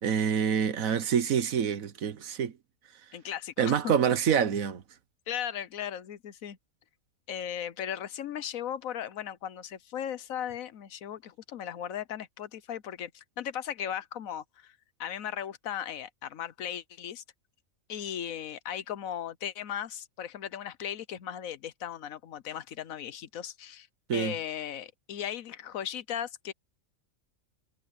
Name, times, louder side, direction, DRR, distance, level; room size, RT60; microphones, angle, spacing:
voice 1, 0.0-2.5 3.6-4.8 24.1-24.3, right 8 dB, 80° right, 1.4 m, -26 dB
voice 2, 3.1-3.9 5.3-6.6 7.3-17.2 17.9-23.9 24.1-26.5, left 9 dB, 80° left, 1.3 m, -37 dB
omnidirectional pair, 1.4 m